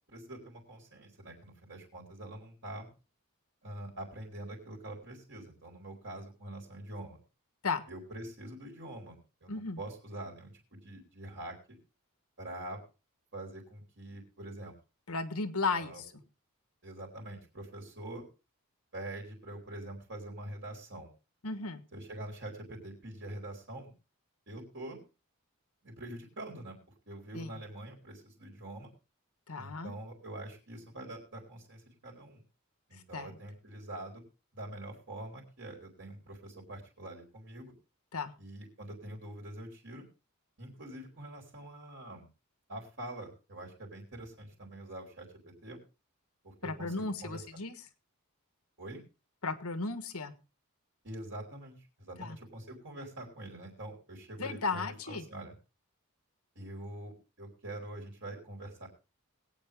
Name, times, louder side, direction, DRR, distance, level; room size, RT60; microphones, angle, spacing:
voice 1, 0.1-2.9 3.6-7.2 7.9-11.8 12.4-12.8 13.3-14.7 15.7-16.0 16.8-18.2 18.9-21.1 21.9-23.9 24.5-25.0 25.8-26.8 27.1-28.9 29.6-32.4 32.9-34.2 34.5-37.7 38.4-40.0 40.6-42.3 42.7-45.3 45.6-45.8 46.4-46.9 47.2-47.4 48.8-49.0 51.0-55.5 56.6-58.9, right 1 dB, 55° right, 0 dB, 4.3 m, -45 dB
voice 2, 9.5-9.8 15.1-16.1 21.4-21.8 27.3-27.5 29.5-29.9 32.9-33.4 38.1-38.3 46.6-47.8 49.4-50.3 52.2-52.4 54.4-55.3, left 4 dB, 80° left, 11 dB, 1.5 m, -35 dB
22.0 x 8.8 x 3.6 m, 0.31 s
head